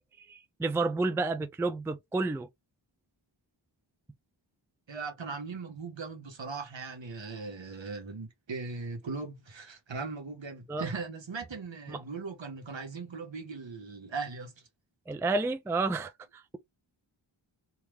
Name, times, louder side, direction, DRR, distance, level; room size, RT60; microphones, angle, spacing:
voice 1, 0.2-2.5 10.7-10.8 11.9-12.0 15.1-16.6, right 3 dB, 5° right, 0.3 m, -31 dB
voice 2, 4.9-14.5, right 4 dB, 70° right, 1.4 m, -39 dB
3.4 x 2.8 x 3.1 m
wide cardioid pair, 80°, 47 cm